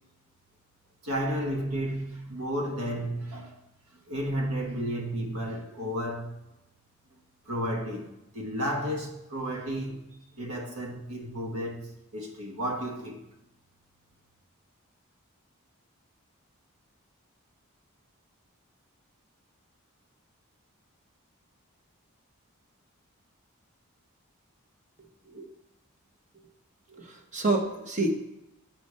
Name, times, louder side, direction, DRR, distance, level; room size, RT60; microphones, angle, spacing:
voice 1, 1.0-3.6 4.1-6.4 7.4-13.2, equal, 85° right, 1.5 m, -32 dB
voice 2, 26.9-28.2, right 2 dB, 35° right, 1.1 m, -29 dB
7.7 x 5.0 x 5.4 m
head